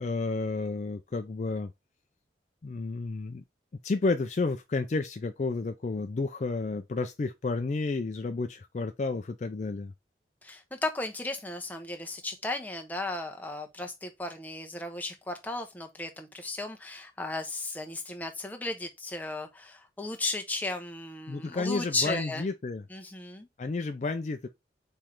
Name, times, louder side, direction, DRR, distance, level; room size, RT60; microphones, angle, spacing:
voice 1, 0.0-1.7 2.6-3.4 3.8-9.9 21.3-22.8 23.6-24.5, left 3 dB, 40° left, 0.3 m, -31 dB
voice 2, 10.4-22.5 22.9-23.5, left 2 dB, 10° left, 0.7 m, -35 dB
4.4 x 3.2 x 3.7 m
head